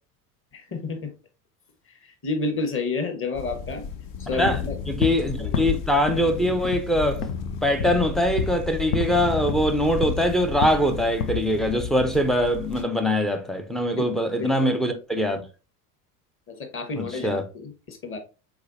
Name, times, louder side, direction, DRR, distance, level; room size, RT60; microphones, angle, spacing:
voice 1, 0.5-1.1 2.0-3.9 4.2-4.8 5.4-5.5 14.0-14.1 14.4-14.7 16.5-18.2, left 3 dB, 25° left, 1.2 m, -30 dB
sound 1, 3.3-12.8, left 6 dB, 45° left, 0.8 m, -33 dB
sound 2, 4.5-5.3 5.5-6.3 6.6-6.9 7.2-7.4 7.8-8.1 8.4-8.7 8.9-9.2 9.5-10.3 10.6-10.9 11.2-11.5, left 7 dB, 80° left, 0.7 m, -29 dB
voice 2, 4.9-7.2 7.6-15.4 16.9-17.4, equal, ahead, 0.4 m, -23 dB
4.8 x 4.0 x 2.5 m
hypercardioid pair, 80°, 48 cm